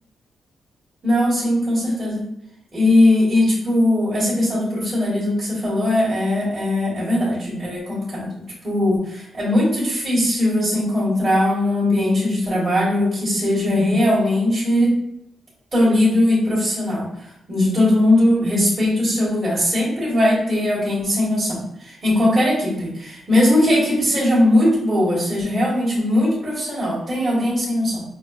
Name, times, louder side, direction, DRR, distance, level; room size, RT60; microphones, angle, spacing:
voice 1, 1.0-2.3 2.7-14.9 15.7-28.0, left 1 dB, 25° right, -9 dB, 1.5 m, -19 dB
6.0 x 2.2 x 2.3 m, 0.79 s
wide cardioid pair, 155°, 0 cm